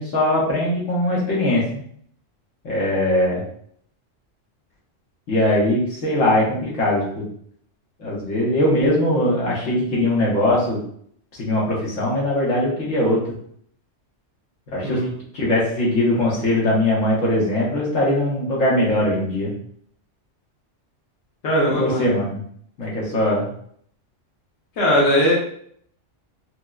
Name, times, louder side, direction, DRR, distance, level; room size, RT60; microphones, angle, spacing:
voice 1, 0.0-1.6 2.6-3.4 5.3-7.2 8.0-10.8 11.4-13.4 14.7-15.0 15.3-19.6 21.7-22.4 22.8-23.5, left 1 dB, 80° left, -4 dB, 1.3 m, -21 dB
voice 2, 21.4-22.1 24.8-25.3, equal, 65° left, -4 dB, 1.1 m, -19 dB
4.3 x 2.0 x 2.3 m, 0.64 s
omnidirectional pair, 1.3 m